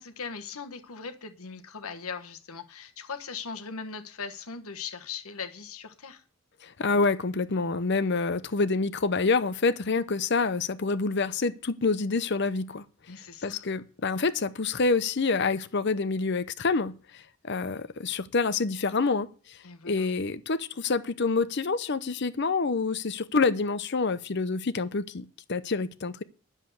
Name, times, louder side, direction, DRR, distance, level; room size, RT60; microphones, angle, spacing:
voice 1, 0.0-6.2 13.1-13.7 19.6-20.1, left 5 dB, 75° left, 1.3 m, -39 dB
voice 2, 6.6-12.8 13.4-19.6 19.8-26.2, left 4 dB, 50° left, 0.7 m, -27 dB
10.5 x 7.3 x 7.8 m
head